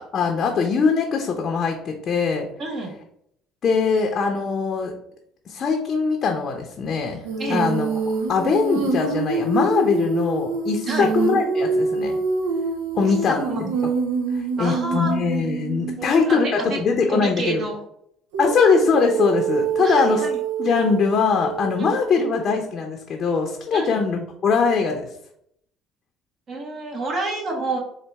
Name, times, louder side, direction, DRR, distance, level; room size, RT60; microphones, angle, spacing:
voice 1, 0.1-2.5 3.6-4.9 5.5-7.2 7.5-12.2 12.9-13.5 14.3-17.6 18.4-20.3 20.6-25.1, left 5 dB, 45° left, 2 dB, 0.6 m, -22 dB
voice 2, 2.6-2.9 7.4-7.6 10.9-11.1 13.0-13.7 14.6-15.1 16.0-16.8 17.1-17.8 19.8-20.4 21.8-21.9 23.7-24.0 26.5-27.8, right 2 dB, 45° right, 1 dB, 1.3 m, -29 dB
Female singing, 7.2-16.1 18.3-22.5, right 4 dB, 90° right, 0.6 m, -26 dB
4.0 x 2.5 x 3.4 m, 0.71 s
supercardioid pair, 80°, 0 cm